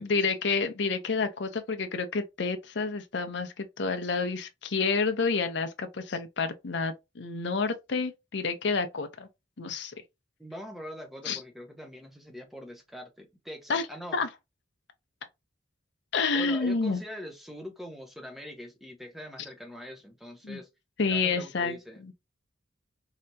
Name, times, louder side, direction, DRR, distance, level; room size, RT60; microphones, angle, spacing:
voice 1, 0.0-9.3 9.6-9.9 11.2-11.4 13.7-13.9 14.1-14.3 16.1-17.0 20.4-20.6 21.0-21.8 22.0-22.1, left 4 dB, 60° left, 0.5 m, -29 dB
voice 2, 10.4-14.2 16.3-20.7 21.1-22.1, equal, ahead, 0.7 m, -43 dB
3.3 x 2.8 x 2.7 m
head